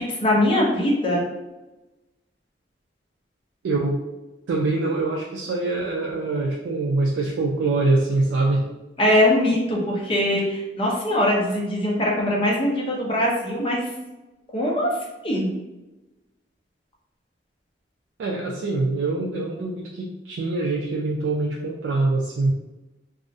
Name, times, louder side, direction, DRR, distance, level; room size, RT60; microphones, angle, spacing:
voice 1, 0.1-1.2 9.0-13.8 14.5-14.9 15.2-15.5, left 1 dB, 30° left, -2 dB, 0.5 m, -21 dB
voice 2, 3.6-4.0 4.5-8.7 18.2-22.5, right 2 dB, 80° right, -1 dB, 0.3 m, -24 dB
2.3 x 2.0 x 2.6 m, 1.1 s
head